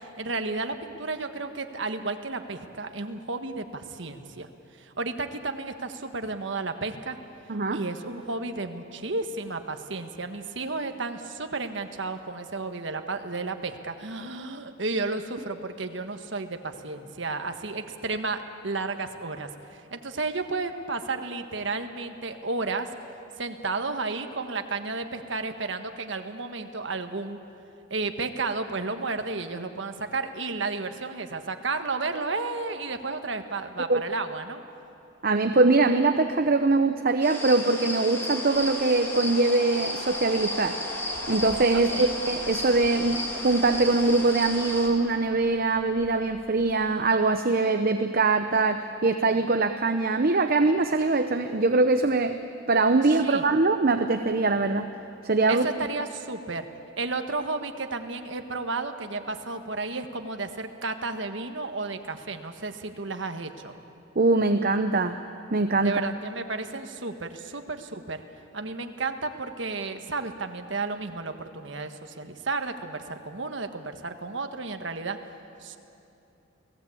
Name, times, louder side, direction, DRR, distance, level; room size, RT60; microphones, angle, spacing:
voice 1, 0.0-4.5 4.8-7.2 7.7-22.9 23.4-27.4 27.9-34.6 41.7-42.1 53.2-53.4 55.5-56.7 57.0-63.7 65.8-68.2 68.5-75.2 75.6-75.8, right 3 dB, 65° right, 7 dB, 1.5 m, -32 dB
voice 2, 7.5-7.8 33.9-34.0 35.2-40.8 41.3-52.4 52.7-54.9 55.2-55.7 64.2-65.1 65.5-66.1, right 3 dB, 50° right, 7 dB, 0.8 m, -23 dB
sound 1, 37.2-44.9, left 1 dB, 10° left, 3.1 m, -34 dB
sound 2, 38.1-47.2, left 1 dB, 75° left, 4.0 m, -42 dB
29.5 x 17.5 x 8.6 m, 2.8 s
head